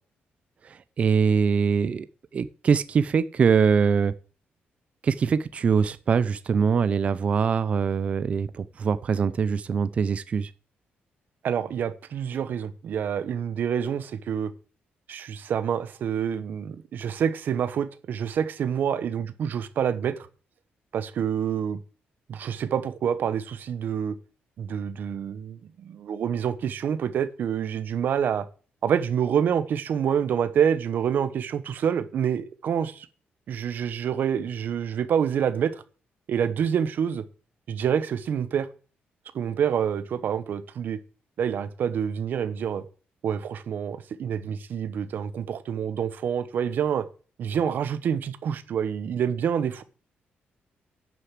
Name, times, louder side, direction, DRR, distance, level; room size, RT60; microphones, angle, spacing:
voice 1, 0.7-2.1 2.3-4.1 5.0-10.5, right 6 dB, 35° right, 0.5 m, -23 dB
voice 2, 11.4-14.5 15.1-20.2 20.9-21.8 22.3-24.1 24.6-28.5 28.8-33.0 33.5-35.7 36.3-37.2 37.7-38.7 39.3-41.0 41.4-42.8 43.2-47.1 47.4-49.8, right 8 dB, 55° right, 1.1 m, -27 dB
11.0 x 6.7 x 7.5 m
wide cardioid pair, 175°, 4 cm